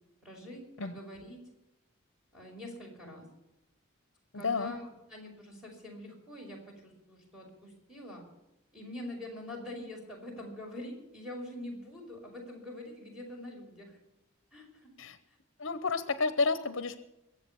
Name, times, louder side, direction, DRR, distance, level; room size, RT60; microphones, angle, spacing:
voice 1, 0.2-1.5 2.3-3.3 4.3-8.2 8.7-14.0 14.5-14.9 15.3-15.4, left 1 dB, 5° right, -1 dB, 5.3 m, -45 dB
voice 2, 4.4-4.8 15.0-15.2 15.6-17.0, left 4 dB, 60° left, 12 dB, 0.8 m, -30 dB
22.5 x 8.0 x 7.1 m, 0.92 s
head